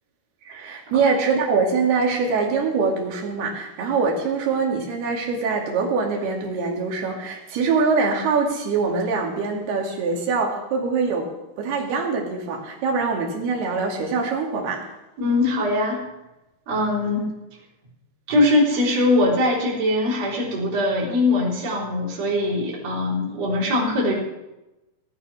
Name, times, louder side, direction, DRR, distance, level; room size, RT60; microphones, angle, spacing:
voice 1, 0.5-14.8, right 4 dB, 70° right, 0 dB, 4.3 m, -23 dB
voice 2, 15.2-16.0 16.7-17.3 18.3-24.1, left 2 dB, 40° right, -5 dB, 4.7 m, -21 dB
18.0 x 10.0 x 5.5 m, 0.99 s
omnidirectional pair, 4.8 m